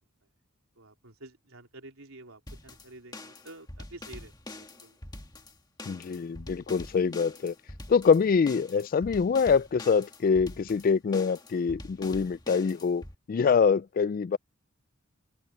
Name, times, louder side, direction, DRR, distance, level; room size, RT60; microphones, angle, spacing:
voice 1, 0.8-5.0, right 2 dB, 90° right, 3.9 m, -49 dB
sound 1, 2.5-13.1, left 2 dB, 20° left, 1.6 m, -45 dB
voice 2, 5.9-7.5 7.9-13.0 13.3-14.4, left 5 dB, 40° left, 0.3 m, -25 dB
open air
head